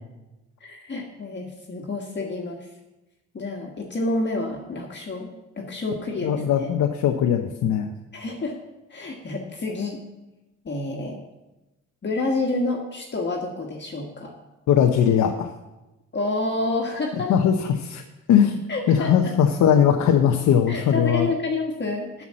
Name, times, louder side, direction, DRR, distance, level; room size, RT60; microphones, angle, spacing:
voice 1, 0.6-2.7 3.3-6.7 8.1-8.6 8.9-10.0 10.6-11.2 12.0-14.3 16.1-17.3 18.7-19.3 20.7-22.2, left 2 dB, 35° left, 0 dB, 1.5 m, -29 dB
voice 2, 6.2-7.9 14.7-15.5 17.3-18.0 18.3-18.6 18.9-21.3, left 8 dB, 75° left, 4 dB, 0.8 m, -20 dB
8.3 x 5.9 x 7.5 m, 1.0 s
cardioid pair, 90°, 30 cm